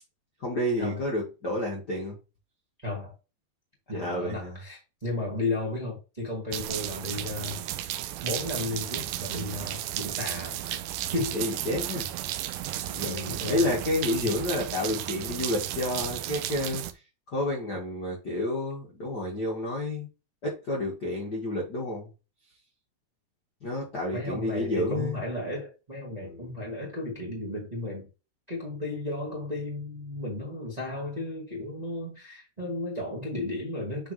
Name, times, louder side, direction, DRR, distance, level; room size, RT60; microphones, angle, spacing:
voice 1, 0.4-2.2 3.9-4.6 11.3-12.1 12.9-16.8 17.3-20.1 20.4-22.1 23.6-25.2 26.2-26.5, left 1 dB, 70° left, 0.9 m, -30 dB
voice 2, 2.8-3.1 3.9-7.6 8.2-10.8 11.1-11.4 13.0-13.7 14.1-14.3 24.1-28.1 28.5-34.1, left 2 dB, 20° right, 1.0 m, -34 dB
sound 1, 6.5-16.9, right 13 dB, 85° right, 2.1 m, -34 dB
9.2 x 3.8 x 3.2 m
omnidirectional pair, 4.9 m